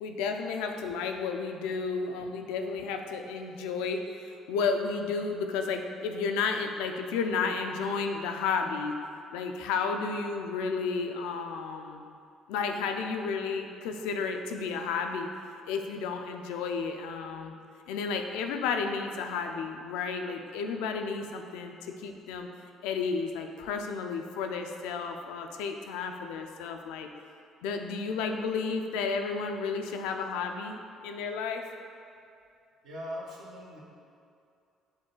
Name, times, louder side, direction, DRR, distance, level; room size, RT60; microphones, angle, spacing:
voice 1, 0.0-9.0 9.3-12.0 12.5-15.3 15.7-17.5 17.9-22.5 22.8-27.1 27.6-31.7, left 5 dB, 85° left, 5 dB, 0.3 m, -32 dB
voice 2, 32.8-33.8, equal, 80° right, -4 dB, 0.9 m, -40 dB
6.1 x 2.2 x 3.8 m, 2.5 s
supercardioid pair, 80°, 0 cm